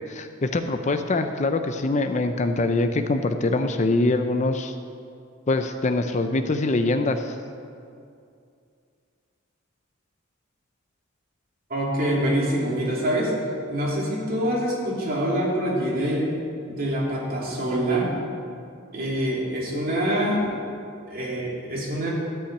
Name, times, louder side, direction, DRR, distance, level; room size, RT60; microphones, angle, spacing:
voice 1, 0.1-4.7 5.5-7.4, left 2 dB, 35° left, 8 dB, 0.5 m, -24 dB
voice 2, 11.7-13.3 13.7-16.3 16.7-18.1 18.9-20.5 21.1-22.1, right 1 dB, 45° right, -4 dB, 2.8 m, -25 dB
13.0 x 5.6 x 8.6 m, 2.4 s
head